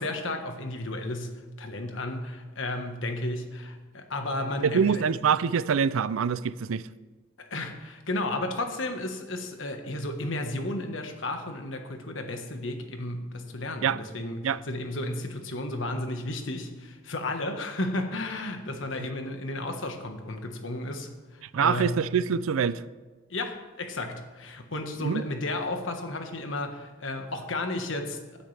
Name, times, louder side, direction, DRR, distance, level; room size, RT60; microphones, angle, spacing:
voice 1, 0.0-5.0 7.4-22.0 23.3-28.2, left 2 dB, 70° left, 1.4 m, -33 dB
voice 2, 4.6-6.8 13.8-14.0 14.4-14.6 21.5-22.8 25.0-25.2, right 6 dB, 85° right, 0.4 m, -25 dB
16.0 x 9.8 x 3.4 m
head